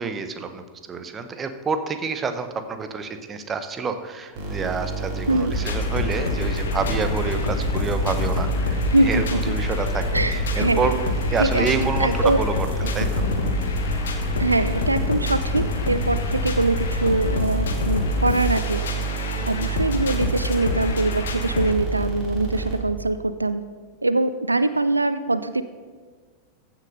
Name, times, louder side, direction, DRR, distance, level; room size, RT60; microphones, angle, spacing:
voice 1, 0.0-10.9 11.3-12.7 12.9-13.3, right 4 dB, 20° right, 9 dB, 0.9 m, -28 dB
sound 1, 4.4-23.1, right 5 dB, 35° right, 3.0 m, -29 dB
voice 2, 5.3-5.6 8.9-9.5 10.1-11.0 11.4-12.4 13.0-13.1 14.4-23.6 24.0-25.6, right 2 dB, 85° right, 12 dB, 0.4 m, -23 dB
sound 2, 5.5-21.7, left 6 dB, 65° left, 1.2 m, -27 dB
14.5 x 6.1 x 5.3 m, 1.5 s
figure-of-eight pair, 90°, 0 cm